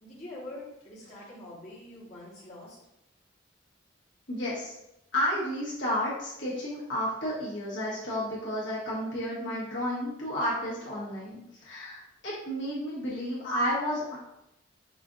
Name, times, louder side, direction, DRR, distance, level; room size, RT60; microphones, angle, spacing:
voice 1, 0.0-2.8, left 1 dB, 35° left, -9 dB, 1.1 m, -44 dB
voice 2, 4.3-4.7 5.1-14.2, equal, 65° left, -7 dB, 1.1 m, -31 dB
5.0 x 2.4 x 2.4 m, 0.86 s
head